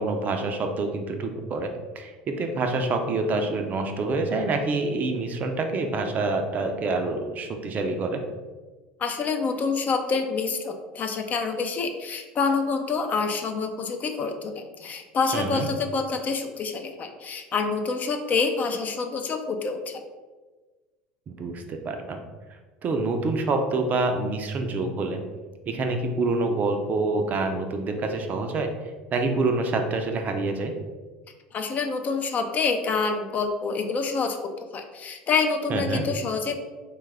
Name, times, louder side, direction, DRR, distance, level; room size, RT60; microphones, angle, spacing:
voice 1, 0.0-8.2 15.3-15.7 21.3-22.2 22.8-25.2 25.7-28.7 29.1-30.7 35.7-36.0, right 3 dB, 40° right, 5 dB, 0.4 m, -27 dB
voice 2, 9.0-20.0 31.5-34.4 34.7-36.6, left 4 dB, 35° left, 5 dB, 0.4 m, -27 dB
3.4 x 2.3 x 3.2 m, 1.3 s
hypercardioid pair, 80°, 5 cm